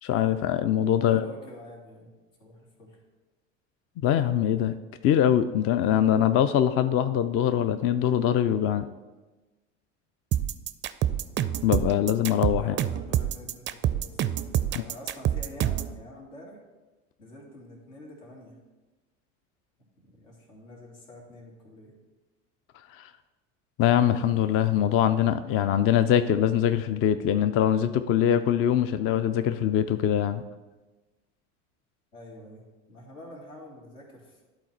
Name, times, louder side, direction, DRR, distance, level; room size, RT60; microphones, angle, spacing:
voice 1, 0.0-1.2 4.0-4.7 5.0-8.8 11.6-12.7 22.9-23.1 23.8-30.4, left 10 dB, 40° left, 11 dB, 0.4 m, -23 dB
voice 2, 1.0-2.1 2.4-3.0 12.6-14.3 14.6-16.6 17.2-18.6 20.0-21.9 32.1-34.4, left 1 dB, 80° left, -3 dB, 2.6 m, -47 dB
sound 1, 10.3-16.0, right 11 dB, 30° right, 0.4 m, -26 dB
10.5 x 4.1 x 4.4 m, 1.2 s
hypercardioid pair, 85°, 37 cm